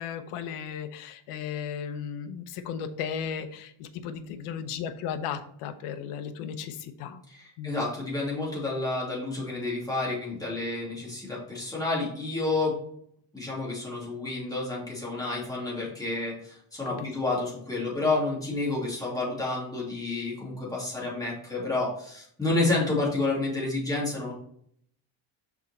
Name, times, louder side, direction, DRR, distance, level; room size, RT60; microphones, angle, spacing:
voice 1, 0.0-7.2 7.6-7.7 17.0-17.1, left 7 dB, 90° left, 9 dB, 0.9 m, -35 dB
voice 2, 7.3-12.8 13.3-24.3, left 2 dB, 5° left, -5 dB, 2.6 m, -30 dB
6.1 x 4.5 x 4.3 m, 0.66 s
cardioid pair, 145°, 50 cm